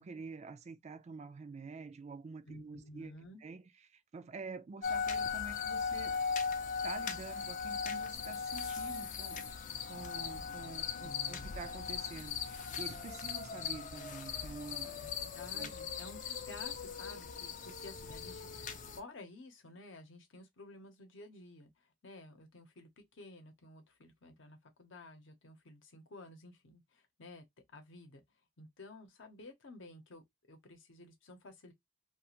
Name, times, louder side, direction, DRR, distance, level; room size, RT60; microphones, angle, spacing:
voice 1, 0.0-6.2 6.8-9.5 9.9-15.0 15.5-15.7, right 4 dB, 35° right, 0.3 m, -48 dB
voice 2, 2.5-3.4 11.0-11.5 15.0-27.4 27.7-28.2 28.6-31.7, left 2 dB, 70° left, 0.8 m, -53 dB
sound 1, 4.8-19.0, left 6 dB, 40° left, 0.4 m, -39 dB
2.4 x 2.3 x 2.8 m
head